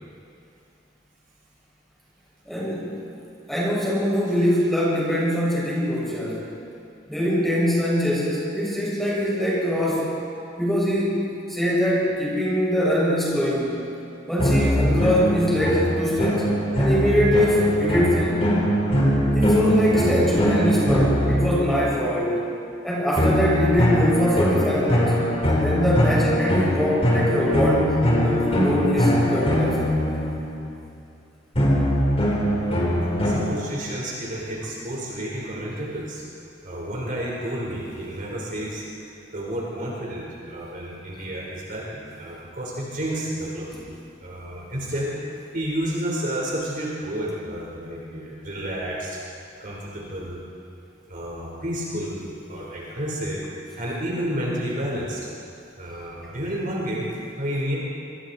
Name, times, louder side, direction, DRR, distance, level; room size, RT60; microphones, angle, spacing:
voice 1, 2.5-3.0 3.5-6.4 7.1-10.2 10.6-13.8 14.3-16.5 16.8-18.4 19.3-22.4 22.8-25.2 25.4-27.9 28.2-29.8 43.7-43.8, equal, ahead, -6 dB, 7.4 m, -23 dB
sound 1, 14.4-22.0 23.2-30.7 31.5-33.4, equal, 30° left, 4.8 m, -22 dB
voice 2, 33.2-36.2 36.6-39.0 39.3-43.7 44.2-45.1 45.5-49.2 49.6-50.4 51.1-53.4 53.8-55.3 55.8-57.1 57.4-57.8, right 1 dB, 45° right, -4 dB, 5.0 m, -30 dB
27.0 x 25.0 x 4.6 m, 2.5 s
head